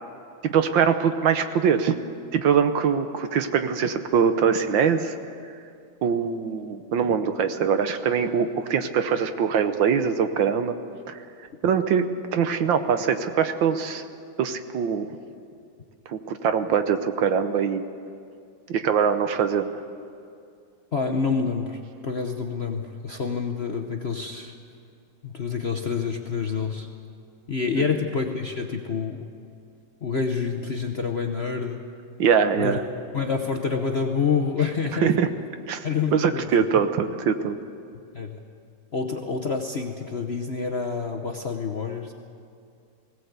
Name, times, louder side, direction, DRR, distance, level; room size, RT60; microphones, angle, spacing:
voice 1, 0.4-2.0 2.3-5.2 6.0-10.7 11.1-11.2 11.6-14.0 14.4-15.1 16.1-17.8 18.7-19.7 27.8-27.9 32.2-32.8 34.9-35.3 35.7-37.6, right 7 dB, 70° right, 9 dB, 1.6 m, -23 dB
voice 2, 20.9-24.5 25.2-26.9 27.5-29.3 30.0-31.8 32.6-32.8 33.1-35.1 35.8-36.5 38.1-38.4 38.9-42.1, left 5 dB, 45° left, 3 dB, 0.9 m, -27 dB
20.0 x 17.5 x 8.1 m, 2.4 s
omnidirectional pair, 2.3 m